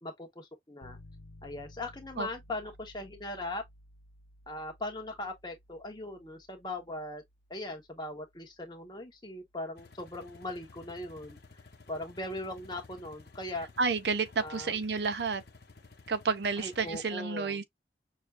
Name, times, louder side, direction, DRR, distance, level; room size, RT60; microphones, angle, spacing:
voice 1, 0.0-1.0 1.4-3.6 4.5-7.2 7.5-11.4 11.9-13.7 14.4-14.8 16.6-17.6, left 2 dB, 25° left, 1.1 m, -39 dB
sound 1, 0.8-10.7, left 1 dB, 85° left, 1.0 m, -57 dB
sound 2, 9.8-17.1, left 3 dB, 60° left, 1.0 m, -54 dB
voice 2, 13.8-15.4 16.1-17.6, right 4 dB, 70° right, 0.6 m, -30 dB
6.2 x 2.3 x 2.5 m
head